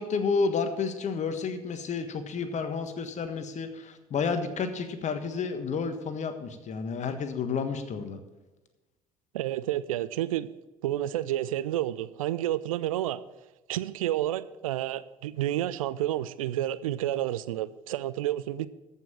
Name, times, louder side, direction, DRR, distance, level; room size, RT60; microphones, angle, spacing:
voice 1, 0.0-8.2, left 5 dB, 40° left, 1.4 m, -31 dB
voice 2, 9.3-10.5 10.8-13.2 13.7-18.7, right 13 dB, 75° right, 0.5 m, -30 dB
14.0 x 5.7 x 7.1 m
figure-of-eight pair, 55°, 18 cm